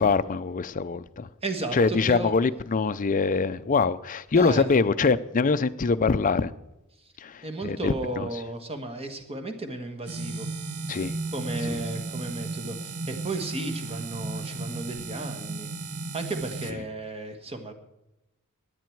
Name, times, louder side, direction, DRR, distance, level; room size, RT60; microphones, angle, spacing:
voice 1, 0.0-1.3 1.7-6.5 7.2-8.3 10.9-11.1, left 4 dB, 35° left, 0.5 m, -24 dB
voice 2, 1.4-2.3 4.3-4.7 7.0-7.1 7.4-10.5 11.3-15.7 16.1-17.7, right 2 dB, 25° right, 1.5 m, -34 dB
sound 1, 10.1-16.7, right 3 dB, 80° right, 1.2 m, -34 dB
17.0 x 10.5 x 4.6 m
head